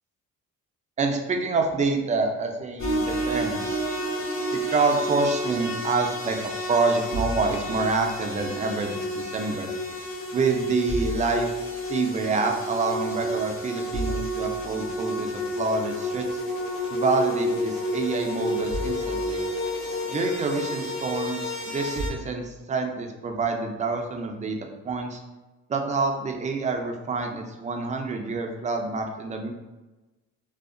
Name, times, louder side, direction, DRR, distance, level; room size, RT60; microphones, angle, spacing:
voice 1, 1.0-3.8 4.5-6.4 6.7-9.7 10.3-11.5 11.9-15.3 15.6-16.4 16.9-19.4 20.1-24.6 24.8-25.2 25.7-29.5, right 3 dB, 25° right, 3 dB, 0.3 m, -27 dB
sound 1, 2.8-22.1, equal, 45° left, 0.7 m, -30 dB
2.7 x 2.0 x 2.5 m, 1.1 s
cardioid pair, 90°, 30 cm